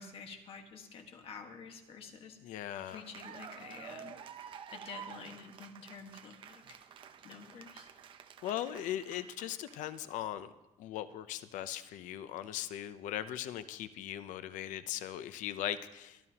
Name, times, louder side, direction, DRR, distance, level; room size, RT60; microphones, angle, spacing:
voice 1, 0.0-2.5 2.9-4.2 4.7-6.8 7.2-7.9, left 5 dB, 50° left, 4 dB, 1.6 m, -49 dB
voice 2, 2.4-3.1 8.4-10.5 10.8-16.2, left 11 dB, 80° left, 12 dB, 0.6 m, -39 dB
Cheering / Applause, 2.6-10.2, right 8 dB, 40° right, 0.7 m, -50 dB
23.5 x 12.5 x 2.9 m, 0.97 s
cardioid pair, 165°, 13 cm